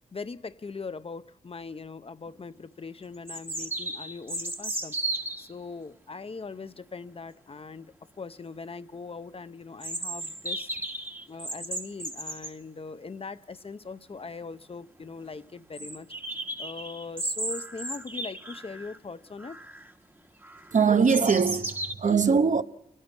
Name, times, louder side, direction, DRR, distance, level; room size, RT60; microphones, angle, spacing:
voice 1, 0.1-10.7 11.3-16.1 16.6-19.6, left 4 dB, 40° left, 0.6 m, -41 dB
sound 1, 2.3-2.4 3.3-5.5 9.8-12.5 14.2-14.3 14.5-14.6 15.0-15.1 15.7-19.0 19.4-19.9 20.4-21.9, right 1 dB, 15° right, 1.3 m, -35 dB
voice 2, 20.7-22.6, right 5 dB, 55° right, 0.9 m, -22 dB
29.0 x 12.0 x 8.1 m
wide cardioid pair, 120°, 15 cm